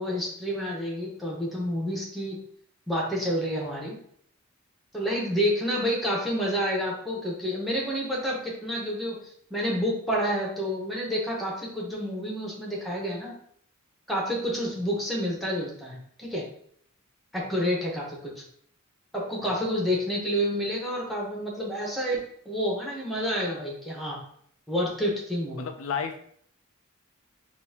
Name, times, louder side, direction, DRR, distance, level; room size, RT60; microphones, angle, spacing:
voice 1, 0.0-2.4 2.9-4.0 4.9-9.2 9.5-13.3 14.1-16.4 17.3-18.3 19.1-24.2 24.7-25.7, equal, ahead, -3 dB, 1.1 m, -29 dB
voice 2, 25.6-26.2, left 6 dB, 70° left, 5 dB, 0.4 m, -31 dB
5.5 x 2.7 x 2.8 m, 0.63 s
head